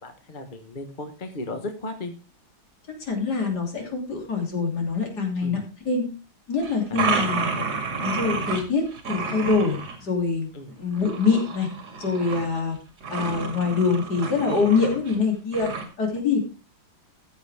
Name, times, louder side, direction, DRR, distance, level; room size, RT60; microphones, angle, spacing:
voice 1, 0.0-2.1 5.4-5.6 6.9-7.7 10.5-10.7, left 2 dB, 30° left, 6 dB, 1.2 m, -36 dB
voice 2, 3.1-6.1 6.5-7.5 8.0-8.8 9.1-10.5 10.8-11.7 12.0-12.8 13.1-15.7 16.0-16.4, left 4 dB, 55° left, 1 dB, 3.4 m, -24 dB
sound 1, 6.6-8.6 8.9-10.0 10.9-12.6 13.0-15.2 15.5-15.8, right 4 dB, 55° right, 2.6 m, -30 dB
15.5 x 7.3 x 3.5 m, 0.34 s
omnidirectional pair, 2.1 m